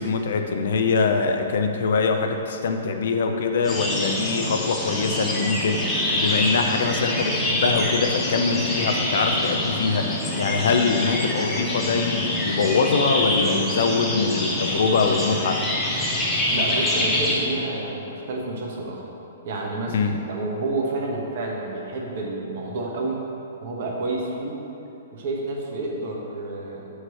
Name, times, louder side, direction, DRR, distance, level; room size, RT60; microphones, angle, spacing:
voice 1, 0.0-15.6 19.9-20.2, left 4 dB, 65° left, 5 dB, 0.5 m, -23 dB
sound 1, 3.6-17.3, left 1 dB, 15° left, 1.3 m, -25 dB
voice 2, 16.5-19.0 19.4-23.2 23.6-24.6 25.1-26.9, right 2 dB, 55° right, -1 dB, 1.1 m, -29 dB
6.4 x 3.1 x 5.6 m, 2.8 s
hypercardioid pair, 120°, 0 cm